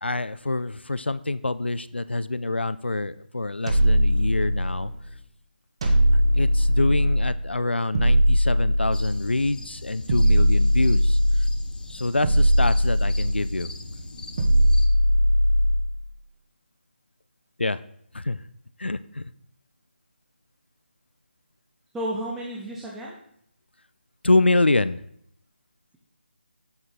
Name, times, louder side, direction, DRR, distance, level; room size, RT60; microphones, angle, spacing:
voice 1, 0.0-4.9 6.4-11.2 11.9-13.7 17.6-17.8 18.1-18.4 18.8-19.2 24.2-25.0, left 2 dB, 75° left, 15 dB, 0.4 m, -26 dB
sound 1, 3.7-5.0 5.8-7.4 7.9-9.4 10.1-11.7 12.2-13.6 14.4-16.0, equal, 30° right, 1.0 m, -20 dB
Crickets in Forrest Clearing on Summer Morning, 8.9-14.9, left 2 dB, 50° left, 0.8 m, -40 dB
voice 2, 21.9-23.2, right 1 dB, 5° right, -4 dB, 0.4 m, -32 dB
7.9 x 6.1 x 3.7 m, 0.69 s
figure-of-eight pair, 155°, 6 cm